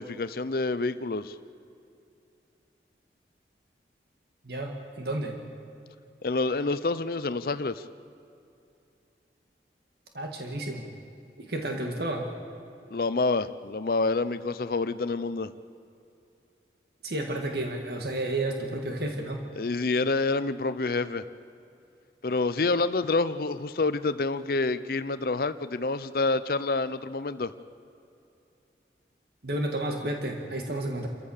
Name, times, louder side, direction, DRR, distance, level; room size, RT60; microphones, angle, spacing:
voice 1, 0.0-1.3 6.2-7.8 12.9-15.5 19.6-21.3 22.2-27.5, left 3 dB, 55° left, 13 dB, 0.6 m, -27 dB
voice 2, 4.4-5.4 10.1-10.9 11.4-12.3 17.0-19.4 29.4-31.1, right 1 dB, 65° right, 2 dB, 1.9 m, -31 dB
29.0 x 14.5 x 6.6 m, 2.6 s
head